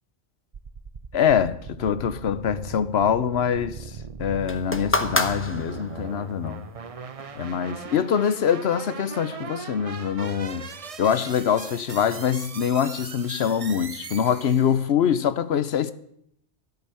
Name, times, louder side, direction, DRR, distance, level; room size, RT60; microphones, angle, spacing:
sound 1, 0.5-14.9, right 5 dB, 40° right, 0.6 m, -39 dB
voice 1, 1.1-3.8 4.2-6.6 7.4-10.7 11.0-15.9, left 8 dB, 65° left, 1.0 m, -24 dB
sound 2, 4.5-6.2 7.2-7.3, left 2 dB, 10° left, 0.8 m, -27 dB
12.5 x 6.9 x 9.4 m
omnidirectional pair, 1.2 m